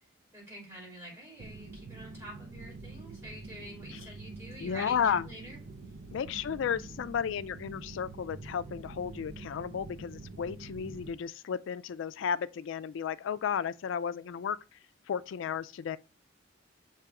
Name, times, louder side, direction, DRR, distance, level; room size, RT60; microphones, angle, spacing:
voice 1, 0.3-5.6 6.3-6.7, right 1 dB, 15° right, 3.3 m, -47 dB
sound 1, 1.4-11.1, right 3 dB, 90° right, 0.7 m, -46 dB
voice 2, 4.6-5.3 6.1-14.8 15.1-16.0, left 7 dB, 75° left, 0.3 m, -33 dB
6.8 x 3.0 x 4.7 m
head